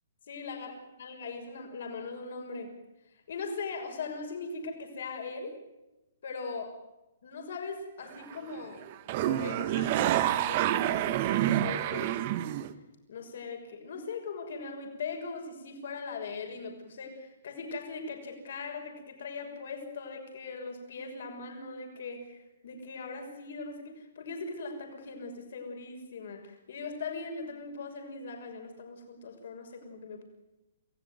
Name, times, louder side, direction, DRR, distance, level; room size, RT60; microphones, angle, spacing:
voice 1, 0.3-2.7 3.1-5.6 6.2-6.7 7.2-8.8 9.2-12.2 13.1-30.2, left 4 dB, 65° left, 4 dB, 6.2 m, -40 dB
sound 1, 8.1-8.5 8.8-12.7, right 13 dB, 45° right, 1.5 m, -28 dB
28.0 x 15.5 x 9.6 m, 0.99 s
hypercardioid pair, 135°, 0 cm